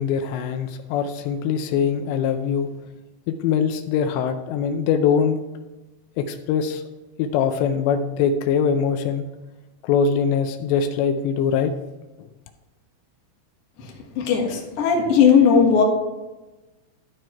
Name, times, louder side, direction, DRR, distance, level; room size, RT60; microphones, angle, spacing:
voice 1, 0.0-2.7 3.3-5.4 6.2-6.8 7.2-9.3 9.8-11.7, left 7 dB, 80° left, 8 dB, 2.7 m, -22 dB
voice 2, 13.8-15.8, left 6 dB, 65° left, -1 dB, 1.5 m, -18 dB
13.5 x 4.6 x 4.5 m, 1.1 s
omnidirectional pair, 5.2 m